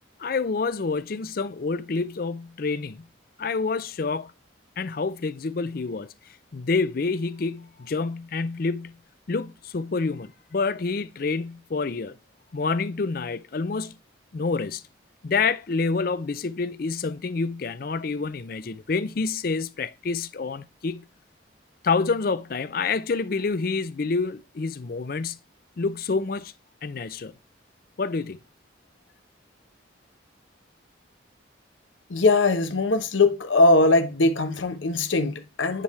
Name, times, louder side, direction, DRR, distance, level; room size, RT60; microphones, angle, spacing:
voice 1, 0.2-3.0 3.4-4.3 4.8-6.1 6.5-9.0 9.3-12.2 12.5-13.9 14.3-14.8 15.2-21.1 21.8-25.4 25.8-26.5 26.8-27.3 28.0-28.4, left 4 dB, 50° left, 0.4 m, -27 dB
voice 2, 32.1-35.8, left 2 dB, 85° left, 0.9 m, -21 dB
9.8 x 3.5 x 3.1 m
head